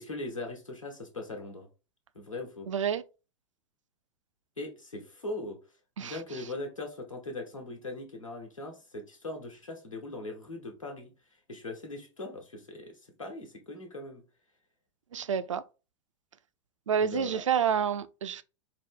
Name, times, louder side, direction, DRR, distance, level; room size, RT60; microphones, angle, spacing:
voice 1, 0.0-1.7 2.1-2.7 4.6-5.6 6.0-11.1 11.5-14.2 17.0-17.4, left 2 dB, 85° left, 1.2 m, -40 dB
voice 2, 2.7-3.0 6.0-6.5 15.1-15.6 16.9-18.4, right 7 dB, 75° right, 0.4 m, -29 dB
4.7 x 2.1 x 3.5 m
figure-of-eight pair, 90°, 16 cm